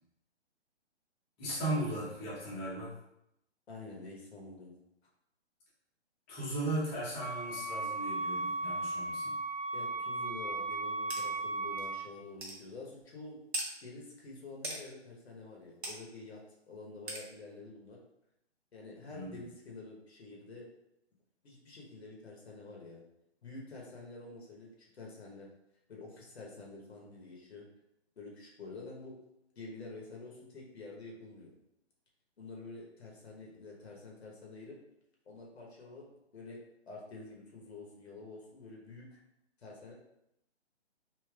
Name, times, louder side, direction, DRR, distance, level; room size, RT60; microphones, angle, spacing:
voice 1, 1.4-2.9 6.3-9.4 19.1-19.4, right 1 dB, 15° left, -9 dB, 0.9 m, -37 dB
voice 2, 3.7-4.7 9.7-13.4 13.8-16.4 16.7-18.0 18.7-20.7 21.4-23.0 23.4-24.7 24.9-25.5 25.9-27.7 28.2-29.2 29.6-31.5 32.4-34.8 35.3-36.6 36.9-39.2 39.6-39.9, left 3 dB, 65° left, -3 dB, 1.1 m, -48 dB
Wind instrument woodwind instrument, 7.2-12.1, right 2 dB, 20° right, 0.7 m, -36 dB
sound 1, 11.1-11.2 11.8-11.9 12.4-12.6 13.5-13.7 14.6-14.8 15.8-16.0 17.1-17.2, right 2 dB, 65° right, 1.0 m, -37 dB
3.4 x 2.8 x 2.3 m, 0.82 s
figure-of-eight pair, 140°, 34 cm